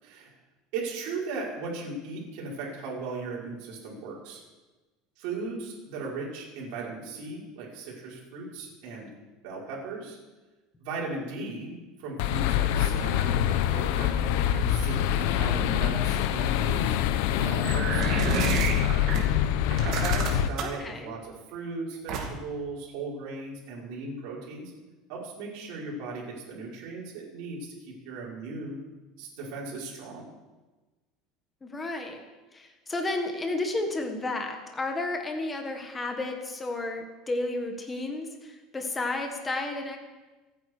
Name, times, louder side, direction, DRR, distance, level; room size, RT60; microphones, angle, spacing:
voice 1, 0.0-0.3 0.7-4.4 5.2-9.1 9.4-10.2 10.8-15.0 15.4-17.0 17.3-19.0 19.8-24.7 25.1-28.8 29.2-30.3, right 3 dB, 55° right, -4 dB, 5.9 m, -37 dB
sound 1, 12.2-20.5, left 11 dB, 65° left, 0.8 m, -25 dB
sound 2, 17.6-19.2 19.7-20.8 22.1-22.5, right 6 dB, 40° right, 2.5 m, -30 dB
voice 2, 20.6-21.1 31.6-32.2 32.5-40.0, left 2 dB, 10° left, 4 dB, 1.5 m, -32 dB
26.0 x 9.6 x 4.9 m, 1.2 s
cardioid pair, 180°, 0 cm